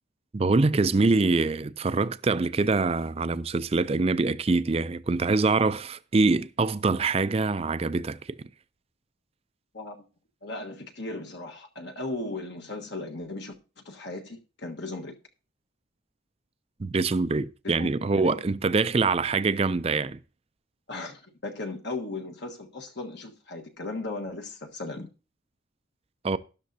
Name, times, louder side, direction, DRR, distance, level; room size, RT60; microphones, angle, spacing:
voice 1, 0.3-8.4 16.8-20.2 26.2-26.4, right 3 dB, 30° right, 0.4 m, -24 dB
voice 2, 10.4-15.2 17.6-18.4 20.9-25.1, left 2 dB, 55° left, 1.4 m, -37 dB
12.5 x 11.5 x 2.7 m
head